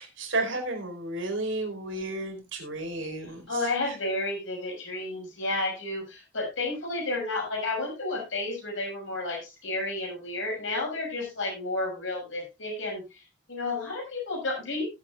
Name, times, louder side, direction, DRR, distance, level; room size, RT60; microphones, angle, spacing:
voice 1, 0.0-3.6, right 2 dB, 75° right, 2 dB, 4.6 m, -32 dB
voice 2, 3.5-13.0 13.5-14.8, left 2 dB, 70° left, 0 dB, 6.2 m, -31 dB
19.0 x 8.2 x 2.4 m, 0.24 s
head